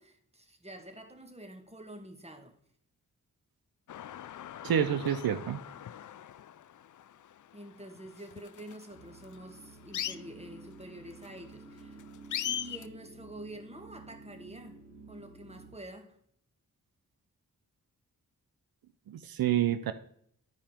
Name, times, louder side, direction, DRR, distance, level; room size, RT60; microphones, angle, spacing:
voice 1, 0.0-2.6 7.5-12.0 12.4-14.8 15.1-16.1, right 1 dB, 20° right, 5 dB, 1.6 m, -47 dB
sound 1, 3.9-12.9, left 10 dB, 60° left, 0.4 m, -41 dB
voice 2, 4.6-5.6 19.1-19.9, right 10 dB, 85° right, 11 dB, 0.5 m, -28 dB
sound 2, 8.9-15.7, right 3 dB, 50° right, 3.1 m, -52 dB
10.5 x 5.0 x 4.4 m, 0.65 s
cardioid pair, 50°, 35 cm